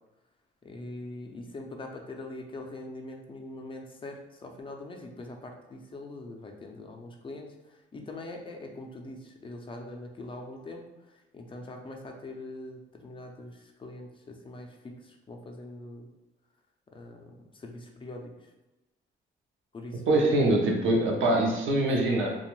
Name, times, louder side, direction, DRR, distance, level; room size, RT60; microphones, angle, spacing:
voice 1, 0.6-10.8 11.3-16.1 16.9-18.3 19.7-20.3, left 2 dB, 25° left, 2 dB, 0.4 m, -42 dB
voice 2, 20.1-22.4, right 1 dB, 75° right, 0 dB, 0.6 m, -24 dB
2.5 x 2.2 x 3.0 m, 1.1 s
cardioid pair, 90°, 20 cm